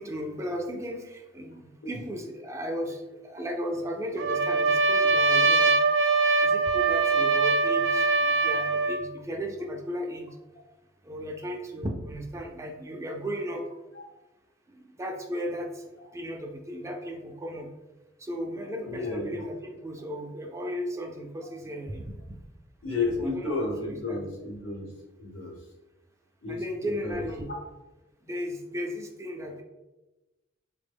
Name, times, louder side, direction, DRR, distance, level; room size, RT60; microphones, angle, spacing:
voice 1, 0.0-5.7 6.4-10.4 11.0-13.6 14.7-17.7 18.2-22.0 23.0-24.2 26.5-27.5 28.3-29.6, equal, 15° right, 1 dB, 0.3 m, -35 dB
Trumpet, 4.2-9.0, right 3 dB, 80° right, 0.5 m, -22 dB
voice 2, 18.8-19.4 22.8-24.9 25.2-25.6 26.4-27.2 27.5-27.6, left 3 dB, 75° left, -1 dB, 0.9 m, -32 dB
3.6 x 2.0 x 3.4 m, 1.1 s
head